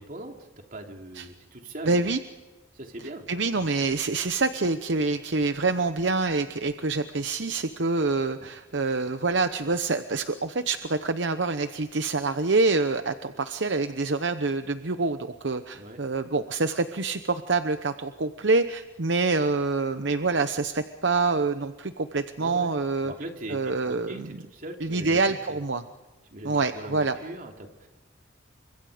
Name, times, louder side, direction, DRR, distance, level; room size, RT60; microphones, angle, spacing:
voice 1, 0.0-2.0 2.7-3.2 15.7-16.0 22.4-22.7 23.0-25.6 26.3-27.9, right 1 dB, 50° right, 3 dB, 3.1 m, -41 dB
voice 2, 1.9-2.2 3.3-23.1 23.5-24.4 24.8-25.8 26.4-27.2, right 3 dB, 70° right, 9 dB, 0.9 m, -26 dB
29.5 x 25.5 x 5.1 m, 1.2 s
head